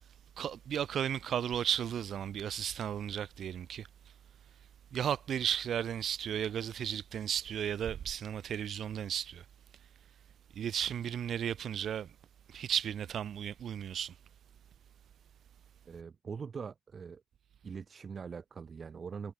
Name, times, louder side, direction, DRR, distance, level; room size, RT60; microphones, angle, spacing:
voice 1, 0.4-3.9 4.9-9.4 10.6-12.1 12.5-14.1, right 9 dB, 65° right, 0.4 m, -34 dB
voice 2, 15.8-17.2 17.6-19.3, right 6 dB, 45° right, 3.2 m, -42 dB
cardioid pair, 90°, 0 cm